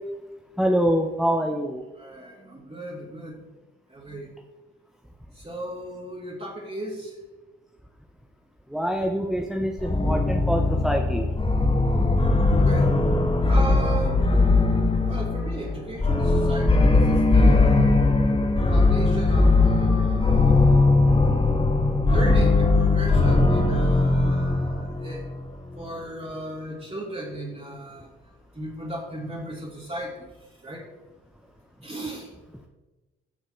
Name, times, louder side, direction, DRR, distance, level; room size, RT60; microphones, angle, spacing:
voice 1, 0.6-1.8 8.7-11.3, equal, ahead, 2 dB, 1.2 m, -25 dB
voice 2, 1.9-3.4 3.9-4.3 5.3-7.1 12.6-12.9 13.5-14.3 15.1-18.0 18.7-21.1 22.1-25.2 25.8-28.1 28.5-30.1 30.6-30.8 31.8-32.3, right 1 dB, 20° right, -4 dB, 3.3 m, -36 dB
sound 1, 9.8-25.5, left 3 dB, 15° left, 1.5 m, -20 dB
13.5 x 6.6 x 4.7 m, 1.1 s
hypercardioid pair, 40°, 32 cm